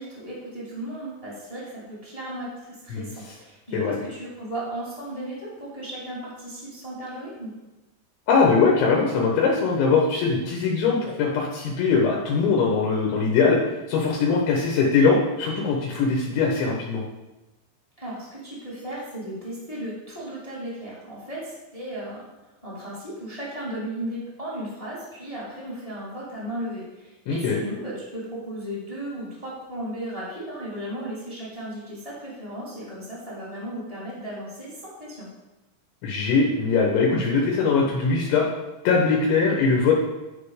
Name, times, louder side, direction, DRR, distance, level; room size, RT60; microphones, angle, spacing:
voice 1, 0.0-7.5 18.0-22.2 22.6-35.3, right 1 dB, 20° left, -6 dB, 1.0 m, -35 dB
voice 2, 8.3-13.6 13.9-17.0 27.3-27.6 36.0-38.5 38.8-39.9, left 4 dB, 80° left, -2 dB, 3.3 m, -21 dB
10.5 x 5.0 x 5.0 m, 1.0 s
omnidirectional pair, 5.5 m